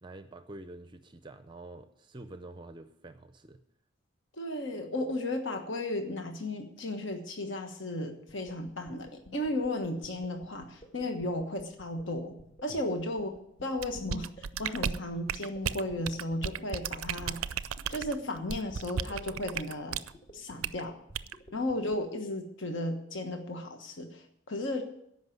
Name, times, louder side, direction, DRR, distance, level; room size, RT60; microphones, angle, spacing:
voice 1, 0.0-3.6 12.7-12.8, right 2 dB, 25° right, 9 dB, 0.5 m, -47 dB
voice 2, 4.3-13.3 13.6-17.4 17.9-20.0 20.3-21.0 21.5-24.8, left 1 dB, 60° left, 5 dB, 1.3 m, -34 dB
sound 1, 8.3-22.0, equal, 35° left, 1.9 m, -52 dB
sound 2, 13.8-20.1 20.6-20.8 21.1-21.4, right 8 dB, 90° right, 0.5 m, -34 dB
13.5 x 5.7 x 9.3 m, 0.75 s
head